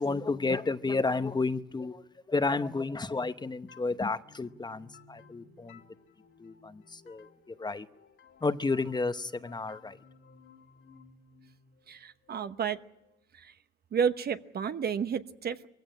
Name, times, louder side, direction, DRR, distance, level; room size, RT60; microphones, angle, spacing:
voice 1, 0.0-5.8 6.4-7.9 8.4-10.0, left 3 dB, 20° left, 11 dB, 0.8 m, -31 dB
sound 1, 3.7-13.2, left 5 dB, 75° left, 2.7 m, -58 dB
voice 2, 11.9-12.8 13.3-13.5 13.9-15.7, right 7 dB, 50° right, 10 dB, 1.0 m, -31 dB
22.5 x 16.0 x 10.0 m, 0.91 s
cardioid pair, 90°, 20 cm